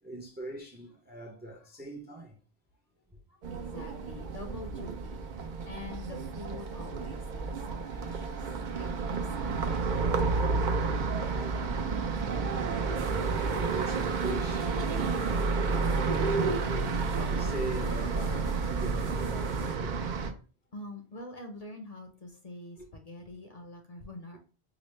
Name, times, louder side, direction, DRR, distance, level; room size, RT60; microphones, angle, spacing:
voice 1, 0.0-2.4 3.1-3.2 7.6-8.2 11.2-20.0 22.8-22.9, right 1 dB, 15° right, 0.5 m, -42 dB
voice 2, 3.3-8.5 8.8-8.9 9.2-10.3 20.7-24.4, left 2 dB, 45° left, 0.7 m, -45 dB
sound 1, 3.4-20.3, right 4 dB, 55° right, 0.6 m, -30 dB
sound 2, 12.9-19.8, right 2 dB, 90° right, 1.1 m, -46 dB
4.9 x 2.0 x 3.1 m
omnidirectional pair, 1.0 m